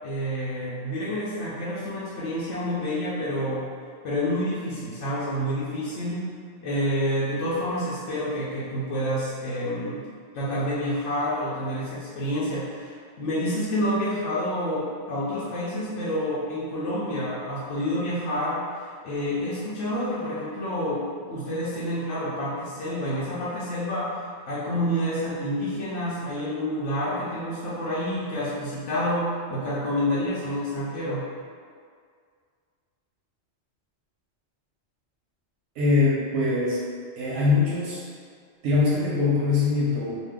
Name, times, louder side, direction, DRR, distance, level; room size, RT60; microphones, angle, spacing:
voice 1, 0.0-3.7 4.0-6.3 6.6-10.0 10.3-24.2 24.5-31.2, equal, 85° left, -9 dB, 1.0 m, -28 dB
voice 2, 35.8-36.8 37.2-38.0 38.6-40.2, left 3 dB, 90° right, -6 dB, 0.9 m, -22 dB
2.7 x 2.2 x 3.4 m, 2.1 s
omnidirectional pair, 1.2 m